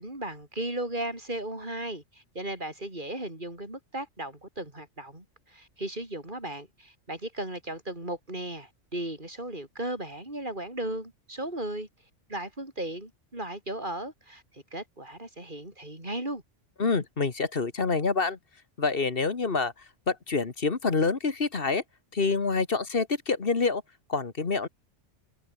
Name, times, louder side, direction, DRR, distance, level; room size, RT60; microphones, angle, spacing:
voice 1, 0.0-11.9 12.3-16.4, right 1 dB, 40° right, 6.0 m, -36 dB
voice 2, 16.8-18.4 18.8-19.7 20.1-21.8 22.1-23.8 24.1-24.7, left 4 dB, 50° left, 1.8 m, -27 dB
omnidirectional pair, 1.2 m